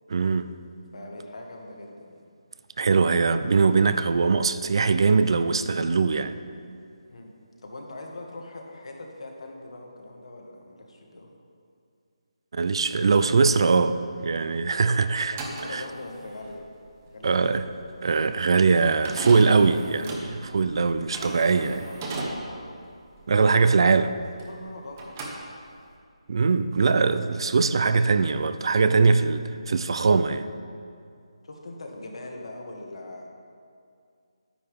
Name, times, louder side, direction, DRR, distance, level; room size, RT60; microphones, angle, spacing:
voice 1, 0.1-0.5 2.8-6.4 12.5-15.4 15.7-15.8 17.2-17.7 18.0-21.8 23.3-24.1 26.3-30.5, right 4 dB, 50° right, 11 dB, 0.4 m, -21 dB
voice 2, 0.9-2.2 7.1-7.3 7.6-11.4 15.3-16.6 17.1-17.6 21.2-22.7 24.5-25.0 25.2-25.5 31.4-33.3, left 2 dB, 65° left, 0 dB, 1.8 m, -41 dB
sound 1, 15.2-24.7 24.9-26.0, right 2 dB, 25° right, 1.0 m, -38 dB
9.7 x 9.5 x 3.6 m, 2.4 s
figure-of-eight pair, 165°, 3 cm